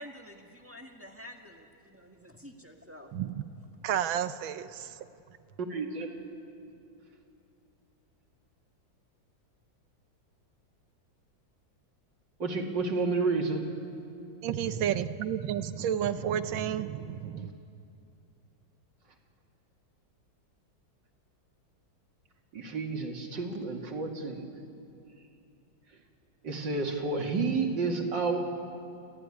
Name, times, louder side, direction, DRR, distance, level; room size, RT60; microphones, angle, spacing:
voice 1, 0.0-3.1, equal, 5° right, 3 dB, 1.5 m, -48 dB
voice 2, 3.1-3.5 3.8-5.0 14.4-17.5, right 9 dB, 90° right, 12 dB, 1.6 m, -31 dB
voice 3, 5.7-6.1 12.4-13.6 22.5-24.6 26.4-28.4, right 3 dB, 65° right, 2 dB, 2.9 m, -30 dB
29.0 x 15.0 x 9.9 m, 2.6 s
omnidirectional pair, 2.1 m